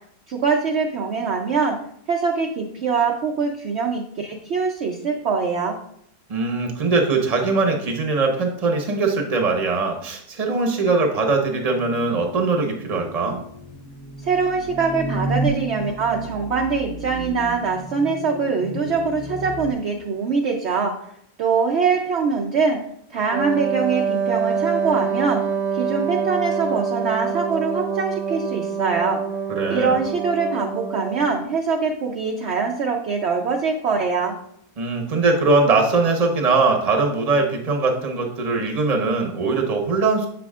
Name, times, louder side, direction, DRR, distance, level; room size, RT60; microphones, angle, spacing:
voice 1, 0.3-1.8 2.1-5.8 14.2-20.9 21.4-22.8 23.1-25.4 25.7-29.2 29.7-34.3, right 5 dB, 60° right, 2 dB, 0.8 m, -23 dB
voice 2, 6.3-13.4 29.5-30.0 34.8-40.3, right 3 dB, 30° right, 3 dB, 0.9 m, -21 dB
sound 1, 11.6-19.7, right 1 dB, 25° left, 1.4 m, -32 dB
Wind instrument woodwind instrument, 23.3-31.4, right 6 dB, 90° right, 1.3 m, -25 dB
7.7 x 6.0 x 2.4 m, 0.69 s
omnidirectional pair, 1.6 m